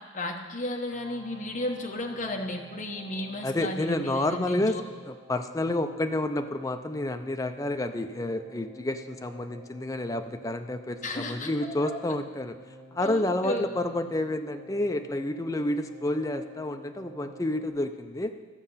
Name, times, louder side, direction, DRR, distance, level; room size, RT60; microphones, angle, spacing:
voice 1, 0.1-4.8 11.0-11.5 11.8-11.9 13.0-13.7, left 1 dB, 40° left, 1 dB, 1.1 m, -33 dB
sound 1, 0.9-17.7, right 2 dB, 55° right, 2.2 m, -51 dB
voice 2, 3.4-4.8 5.1-12.6 12.9-18.3, left 1 dB, 15° left, 7 dB, 0.5 m, -29 dB
13.5 x 6.5 x 5.6 m, 1.4 s
head